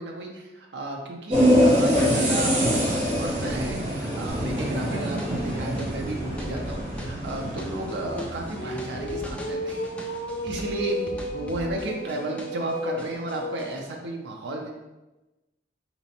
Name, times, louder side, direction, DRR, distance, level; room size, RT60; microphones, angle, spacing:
voice 1, 0.0-14.7, right 2 dB, 80° right, 0 dB, 0.5 m, -33 dB
sound 1, 1.3-9.7, equal, 40° right, 0.9 m, -25 dB
sound 2, 2.2-2.6 3.0-3.1 3.5-3.6 5.7-13.7, left 1 dB, 60° left, 0.5 m, -35 dB
sound 3, 4.3-12.7 13.0-13.8, left 1 dB, 5° left, 0.3 m, -41 dB
4.2 x 2.9 x 2.8 m, 1.0 s
head